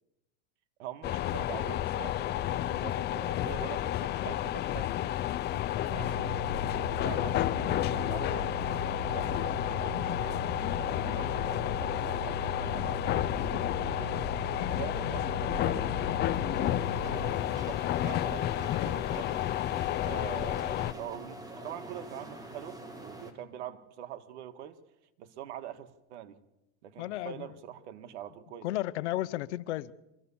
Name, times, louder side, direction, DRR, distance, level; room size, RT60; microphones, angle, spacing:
voice 1, 0.8-6.5 7.0-8.6 9.0-10.5 10.8-14.3 14.7-15.9 17.0-19.4 20.0-24.8 25.2-26.4 26.8-28.7, right 11 dB, 80° right, 1.8 m, -44 dB
sound 1, 1.0-20.9, left 13 dB, 30° left, 0.6 m, -31 dB
sound 2, 5.9-17.3, right 3 dB, 30° right, 7.7 m, -41 dB
sound 3, 16.0-23.3, right 1 dB, 10° right, 2.4 m, -45 dB
voice 2, 27.0-27.5 28.6-29.9, left 15 dB, 85° left, 0.9 m, -34 dB
24.5 x 15.0 x 7.1 m
supercardioid pair, 140°, 34 cm